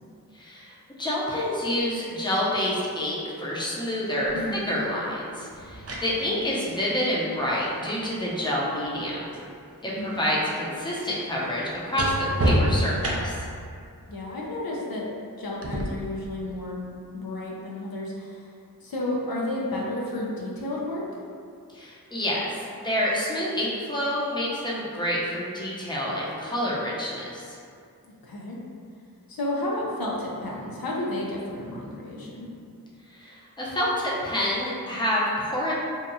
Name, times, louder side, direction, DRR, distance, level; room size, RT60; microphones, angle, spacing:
voice 1, 0.3-4.4 4.6-9.4 9.8-13.4 21.7-27.6 33.1-35.7, left 1 dB, 15° left, -6 dB, 0.6 m, -28 dB
voice 2, 4.3-4.7 6.2-6.4 10.0-10.3 14.1-15.1 15.4-16.8 17.1-18.5 18.8-21.0 28.2-28.6 29.3-32.5, left 1 dB, 75° left, -3 dB, 0.5 m, -32 dB
sound 1, 4.3-4.4 5.5-9.5 9.8-13.6 15.6-15.8, equal, 45° right, 0.4 m, -30 dB
2.8 x 2.2 x 2.6 m, 2.3 s
wide cardioid pair, 40°, 36 cm